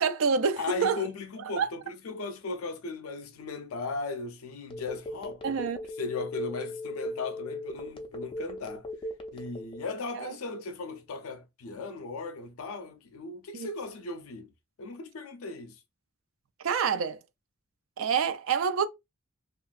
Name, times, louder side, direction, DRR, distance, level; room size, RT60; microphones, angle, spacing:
voice 1, 0.0-1.0 1.6-1.7 5.4-5.8 10.1-10.3 13.5-13.7 16.6-17.2 18.0-18.9, right 6 dB, 65° right, 0.4 m, -27 dB
voice 2, 0.6-5.6 6.0-8.9 9.3-14.5 14.8-15.8, left 3 dB, 75° left, 0.5 m, -37 dB
Telephone, 4.7-9.9, left 2 dB, 25° left, 0.4 m, -37 dB
2.8 x 2.4 x 2.4 m
head